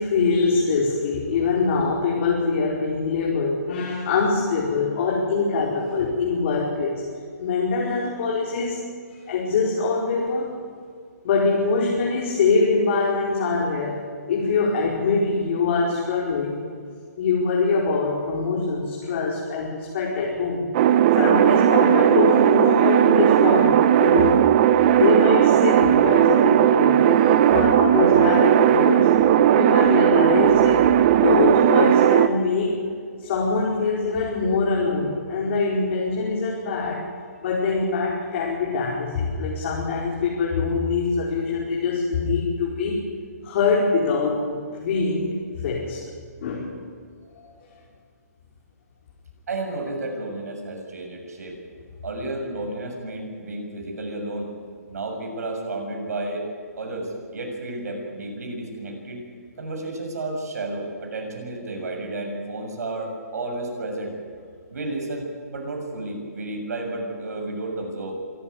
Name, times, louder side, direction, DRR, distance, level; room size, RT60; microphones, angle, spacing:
voice 1, 0.0-7.0 7.4-8.8 9.3-10.5 11.2-14.0 14.3-16.6 17.2-20.7 21.1-24.4 24.9-29.1 29.5-32.8 33.2-37.0 37.4-43.0 43.4-46.0 46.4-46.6, left 4 dB, 45° left, -4 dB, 5.0 m, -23 dB
sound 1, 20.7-32.3, right 11 dB, 35° right, 1.0 m, -17 dB
voice 2, 49.5-51.6 52.0-54.5 54.9-56.4 56.8-59.2 59.6-64.1 64.7-65.3 65.5-68.2, right 2 dB, 65° right, 2 dB, 7.1 m, -32 dB
26.0 x 13.0 x 9.7 m, 2.1 s
hypercardioid pair, 145°, 9 cm